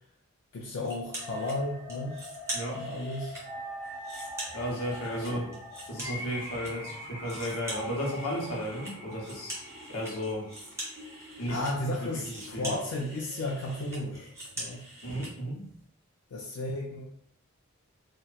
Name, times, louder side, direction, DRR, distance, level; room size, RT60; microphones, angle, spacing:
voice 1, 0.5-2.2 2.7-3.4 5.1-5.5 11.5-14.8 16.3-17.0, left 1 dB, 70° left, -2 dB, 0.4 m, -34 dB
sound 1, 0.8-1.6 1.9-3.4 3.8-6.7 7.0-15.3, right 1 dB, 15° right, 0.6 m, -43 dB
sound 2, 1.1-15.1, equal, 55° right, 0.9 m, -43 dB
voice 2, 4.5-5.5 5.9-9.5 9.9-10.5 11.4-11.6 12.0-12.7 15.0-15.7, equal, 90° left, -3 dB, 0.8 m, -34 dB
2.8 x 2.1 x 2.3 m, 0.65 s
head